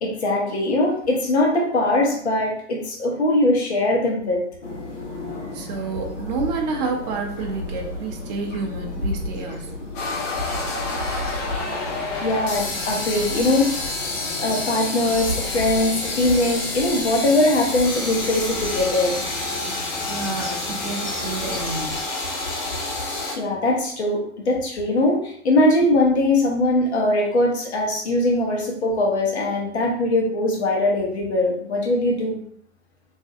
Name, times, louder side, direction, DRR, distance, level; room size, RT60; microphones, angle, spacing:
voice 1, 0.0-4.4 12.0-13.8 14.4-19.2 23.3-32.4, left 1 dB, 65° left, -1 dB, 0.9 m, -21 dB
sound 1, 4.6-22.0, left 1 dB, 90° left, 0.7 m, -34 dB
voice 2, 5.5-9.7 20.1-22.0, right 4 dB, 35° right, 1 dB, 0.5 m, -29 dB
sound 2, 10.0-23.4, left 2 dB, 25° left, 0.4 m, -29 dB
2.6 x 2.2 x 2.4 m, 0.63 s
figure-of-eight pair, 100°, 35 cm